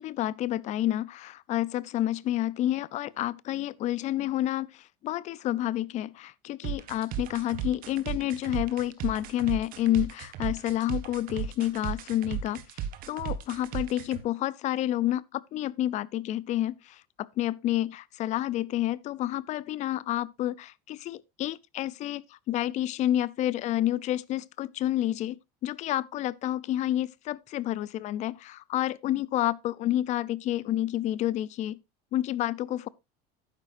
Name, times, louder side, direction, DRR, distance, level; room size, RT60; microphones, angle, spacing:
voice 1, 0.0-31.8 32.1-32.9, left 13 dB, 40° left, 0.5 m, -29 dB
sound 1, 6.6-14.2, right 9 dB, 45° right, 1.4 m, -35 dB
12.0 x 9.8 x 2.6 m
cardioid pair, 150°, 19 cm